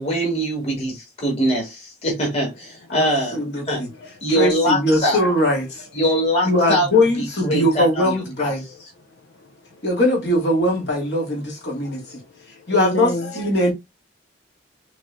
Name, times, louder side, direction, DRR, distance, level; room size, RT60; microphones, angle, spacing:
voice 1, 0.0-3.4 3.6-3.8 4.2-5.2 5.9-6.9 7.2-8.5, equal, 35° left, 2.3 m, -22 dB
voice 2, 3.3-3.9 4.3-5.9 6.4-8.6 9.8-12.2 12.7-13.7, left 1 dB, 65° left, 2.4 m, -21 dB
voice 3, 8.7-9.8 11.7-13.5, equal, 85° left, 0.8 m, -32 dB
5.8 x 3.3 x 2.7 m
head